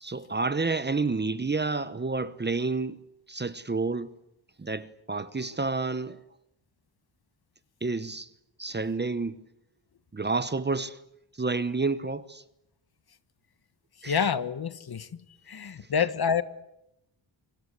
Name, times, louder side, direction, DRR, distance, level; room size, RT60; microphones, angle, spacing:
voice 1, 0.0-3.0 3.3-4.1 4.6-6.2 7.8-8.3 8.6-9.4 10.1-11.0 11.4-12.4 14.0-14.2, right 3 dB, 20° right, 0.9 m, -29 dB
voice 2, 14.1-15.2 15.5-16.4, left 7 dB, 50° left, 1.4 m, -27 dB
27.0 x 25.5 x 8.2 m
wide cardioid pair, 155°, 47 cm